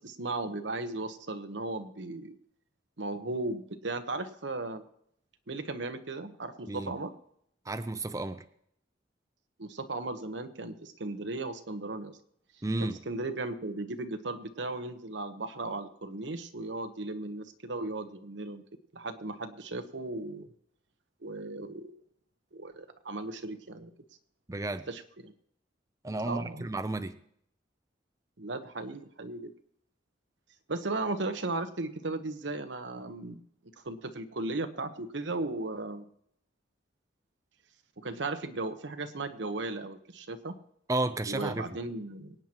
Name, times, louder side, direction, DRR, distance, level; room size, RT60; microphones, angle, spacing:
voice 1, 0.0-2.4 3.0-4.8 5.5-7.1 9.6-12.2 12.8-18.6 18.9-20.5 21.2-22.0 22.5-23.9 24.9-25.3 26.2-26.7 28.4-29.5 30.7-33.4 33.8-36.1 38.0-40.5 41.3-42.3, right 2 dB, 85° right, 8 dB, 1.1 m, -36 dB
voice 2, 7.7-8.4 12.6-13.0 24.5-24.8 26.0-27.1 40.9-41.7, right 2 dB, 20° right, 9 dB, 0.5 m, -32 dB
24.5 x 9.1 x 3.0 m, 0.70 s
head